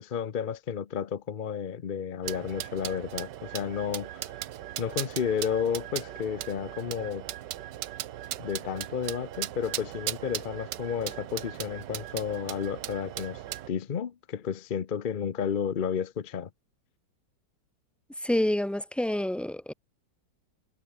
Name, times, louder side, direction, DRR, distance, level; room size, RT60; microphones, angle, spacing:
voice 1, 0.0-4.3 4.8-7.3 8.4-13.4 13.7-16.5, left 7 dB, 50° left, 0.6 m, -32 dB
sound 1, 2.2-13.7, right 13 dB, 80° right, 1.4 m, -38 dB
voice 2, 18.2-19.7, left 1 dB, ahead, 2.5 m, -28 dB
omnidirectional pair, 1.9 m